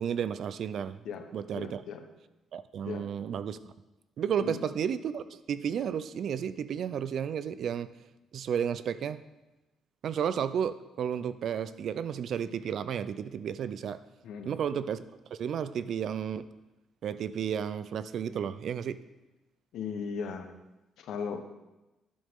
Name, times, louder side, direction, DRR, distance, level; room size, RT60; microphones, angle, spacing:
voice 1, 0.0-1.0 1.3-1.8 2.5-3.6 4.2-7.9 8.3-9.2 10.0-14.0 14.4-15.0 15.4-16.4 17.0-19.0, right 8 dB, 65° right, 14 dB, 0.5 m, -32 dB
voice 2, 1.5-2.1 2.9-3.1 4.4-4.7 14.2-14.5 19.7-20.5 21.0-21.4, left 6 dB, 75° left, 7 dB, 1.0 m, -37 dB
11.5 x 8.6 x 3.7 m, 1.0 s
cardioid pair, 90°, 0 cm